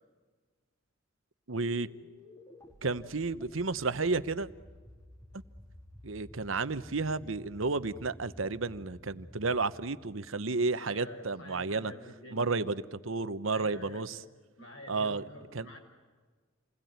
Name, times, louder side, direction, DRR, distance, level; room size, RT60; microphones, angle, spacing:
sound 1, 1.5-10.8, left 1 dB, 15° left, 3.3 m, -53 dB
voice 1, 1.5-1.9 2.8-4.5 6.0-11.9 12.3-14.1 14.9-15.2 15.5-15.7, right 3 dB, 75° right, 13 dB, 1.0 m, -32 dB
voice 2, 10.8-12.6 13.5-14.3 14.6-15.8, left 1 dB, 70° left, 3 dB, 6.3 m, -48 dB
29.0 x 21.0 x 9.5 m, 1.4 s
head